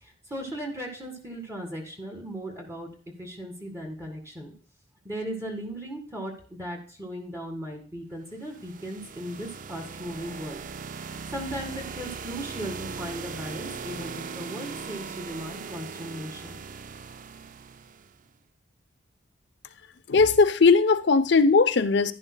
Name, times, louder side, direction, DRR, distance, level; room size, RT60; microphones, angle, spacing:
voice 1, 0.0-2.9 3.2-4.5 5.0-10.6 11.3-16.6, equal, 15° right, 1.9 m, -37 dB
sound 1, 8.3-18.2, right 5 dB, 45° right, 0.5 m, -39 dB
voice 2, 20.1-22.1, left 4 dB, 60° left, 0.7 m, -19 dB
11.0 x 10.5 x 2.3 m
head